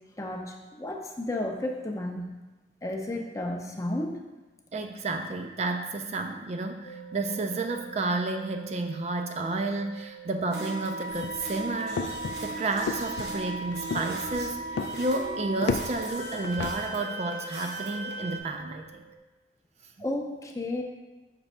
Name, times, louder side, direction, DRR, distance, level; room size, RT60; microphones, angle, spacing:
voice 1, 0.2-2.3 2.8-4.2 20.0-20.8, left 1 dB, 20° left, 2 dB, 0.5 m, -32 dB
voice 2, 4.7-12.0 12.4-19.0, right 2 dB, 40° right, 5 dB, 0.4 m, -31 dB
sound 1, 6.8-19.2, right 8 dB, 45° left, 0.9 m, -48 dB
sound 2, 10.5-18.4, right 2 dB, 70° right, 1.0 m, -36 dB
sound 3, 11.1-16.7, left 4 dB, 85° left, 0.3 m, -34 dB
6.0 x 3.3 x 5.4 m, 1.1 s
head